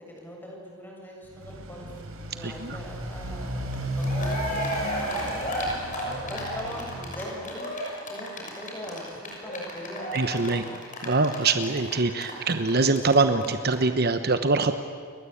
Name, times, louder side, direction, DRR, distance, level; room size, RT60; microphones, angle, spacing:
voice 1, 0.1-1.9 2.3-5.7 6.2-7.7 8.1-10.7, equal, 10° left, -2 dB, 7.6 m, -41 dB
Motorcycle, 1.2-7.3, right 1 dB, 80° right, 4.3 m, -34 dB
voice 2, 2.4-2.8 10.1-10.6 11.0-14.8, right 3 dB, 50° right, 9 dB, 1.0 m, -23 dB
Cheering, 3.7-3.8 4.0-13.1 13.4-13.5 13.7-13.8, equal, 40° left, 6.5 m, -33 dB
29.5 x 23.0 x 8.6 m, 2.1 s
head